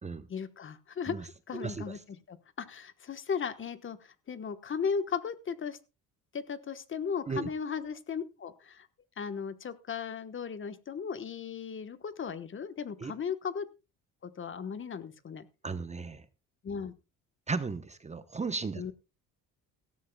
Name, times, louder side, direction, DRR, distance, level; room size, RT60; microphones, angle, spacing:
voice 1, 0.3-2.0 2.3-5.8 6.3-8.9 9.2-13.7 14.2-15.5 16.6-16.9 18.8-18.9, left 6 dB, 35° left, 11 dB, 1.2 m, -36 dB
voice 2, 1.5-2.0 7.3-7.5 13.0-13.1 15.6-16.3 17.5-18.9, right 4 dB, 20° right, 12 dB, 0.9 m, -35 dB
17.0 x 14.0 x 2.3 m, 0.28 s
cardioid pair, 105°, 34 cm